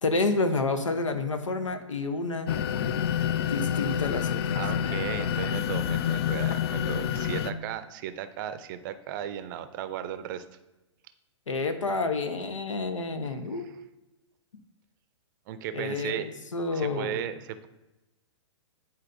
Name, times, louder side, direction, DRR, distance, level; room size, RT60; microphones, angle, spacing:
voice 1, 0.0-2.5 3.5-4.4 11.5-13.7 15.7-17.2, left 3 dB, 85° left, 8 dB, 0.8 m, -29 dB
sound 1, 2.5-7.5, left 9 dB, 55° left, 0.4 m, -28 dB
voice 2, 4.5-10.4 13.3-13.7 15.5-16.3 16.7-17.7, right 10 dB, 40° right, 11 dB, 0.5 m, -36 dB
9.8 x 4.0 x 2.6 m, 1.0 s
hypercardioid pair, 120°, 16 cm